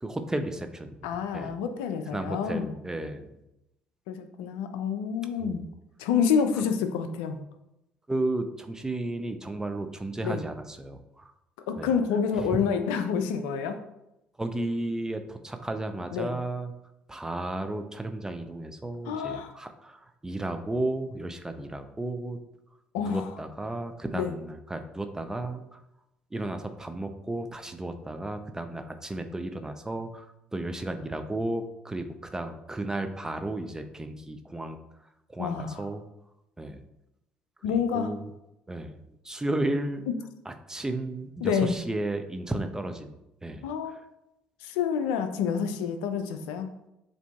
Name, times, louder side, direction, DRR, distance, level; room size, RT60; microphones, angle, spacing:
voice 1, 0.0-1.0 1.3-1.6 2.1-3.3 5.4-5.6 8.1-11.3 11.8-11.9 12.4-12.5 14.4-16.7 17.1-22.4 23.0-25.8 26.3-32.1 32.3-34.8 35.3-36.1 36.6-36.8 37.7-38.3 38.7-40.0 40.5-43.2 43.4-44.0, right 2 dB, 15° right, 7 dB, 0.5 m, -33 dB
voice 2, 1.0-2.7 4.1-5.7 6.0-7.4 10.2-10.4 11.7-13.8 16.1-16.3 19.1-19.5 22.9-23.3 24.1-24.3 35.4-35.9 37.6-38.2 40.1-40.2 41.4-41.7 43.6-44.0 44.6-46.7, left 7 dB, 80° left, 8 dB, 0.4 m, -28 dB
7.1 x 2.6 x 2.3 m, 0.89 s
hypercardioid pair, 60°, 4 cm